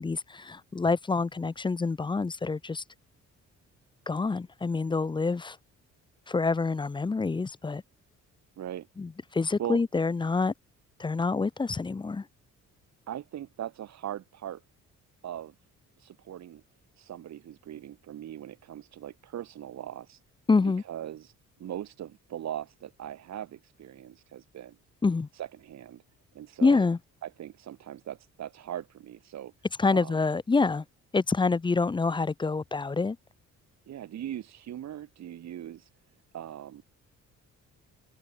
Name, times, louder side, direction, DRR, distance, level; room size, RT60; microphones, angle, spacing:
voice 1, 0.0-2.8 4.1-5.6 6.3-7.8 9.0-10.5 11.0-12.2 20.5-20.8 25.0-25.3 26.6-27.0 29.8-30.8 31.1-33.2, left 4 dB, 15° left, 0.5 m, -27 dB
voice 2, 8.6-8.9 9.6-9.8 13.1-14.6 15.2-15.5 16.0-16.6 17.0-20.2 20.9-21.3 21.6-24.7 25.3-26.0 26.3-26.9 27.2-29.5 29.9-30.2 33.9-35.9 36.3-36.8, right 11 dB, 60° right, 1.6 m, -40 dB
cardioid pair, 90°, 30 cm